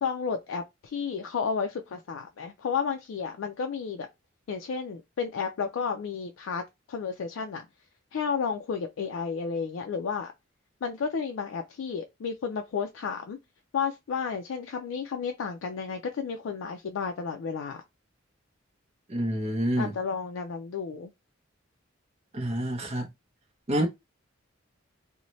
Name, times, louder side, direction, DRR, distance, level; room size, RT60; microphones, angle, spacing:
voice 1, 0.0-4.1 4.5-6.6 6.9-7.7 8.1-10.3 10.8-13.4 13.7-17.8 19.8-21.1, left 6 dB, 80° left, 0.4 m, -32 dB
voice 2, 19.1-19.9 22.3-23.1 23.7-23.9, right 1 dB, 35° right, 0.6 m, -27 dB
2.6 x 2.1 x 2.9 m
head